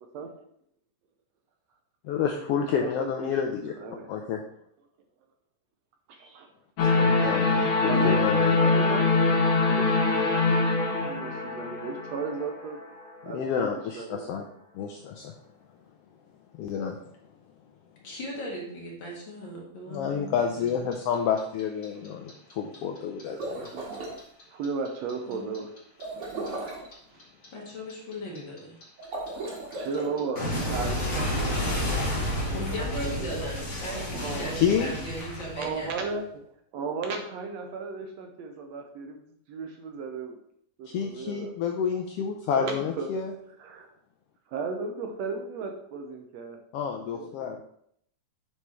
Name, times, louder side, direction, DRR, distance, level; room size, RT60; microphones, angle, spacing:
voice 1, 2.0-3.7 4.1-4.4 7.0-8.6 13.2-14.4 14.7-15.3 16.6-17.0 19.9-23.7 34.5-34.9 40.9-43.3 46.7-47.6, left 7 dB, 90° left, 3 dB, 1.3 m, -29 dB
voice 2, 2.8-3.4 3.8-4.1 6.1-6.5 7.9-8.2 8.5-12.8 13.2-13.7 14.0-14.3 20.7-20.8 23.2-24.1 24.5-25.7 27.1-27.2 29.7-33.6 33.9-34.6 35.6-36.2 36.7-39.2 39.5-40.4 40.8-41.6 42.5-43.1 43.6-43.9 44.5-46.6 47.1-47.5, right 4 dB, 70° right, 4 dB, 1.9 m, -35 dB
sound 1, 6.8-12.8, left 3 dB, 60° left, 1.6 m, -23 dB
voice 3, 18.0-20.9 25.3-25.6 27.5-28.8 32.5-36.0, left 1 dB, 45° left, -3 dB, 2.1 m, -38 dB
Clock, 20.7-23.7 23.9-26.9 27.2-36.1, left 1 dB, 25° left, 2.1 m, -31 dB
sound 2, 23.2-24.2 26.0-26.9 29.0-30.1, right 2 dB, 50° right, 2.5 m, -36 dB
8.1 x 4.6 x 4.3 m, 0.69 s
omnidirectional pair, 3.4 m